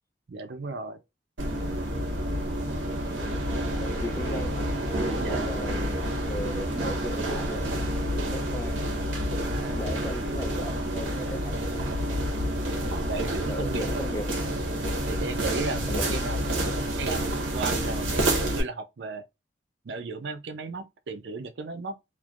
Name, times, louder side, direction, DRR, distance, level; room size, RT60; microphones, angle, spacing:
voice 1, 0.3-1.0 5.2-5.5 9.5-9.8 13.1-14.0 15.0-16.4 17.0-19.2 19.8-22.0, right 3 dB, 65° right, 0.4 m, -35 dB
sound 1, 1.4-18.6, right 1 dB, 80° right, 0.9 m, -29 dB
voice 2, 2.8-3.4 3.8-4.7 5.1-7.6 8.1-8.8 9.7-11.9 13.5-14.3 15.6-16.1, left 1 dB, 15° left, 0.4 m, -38 dB
3.2 x 2.1 x 2.4 m
head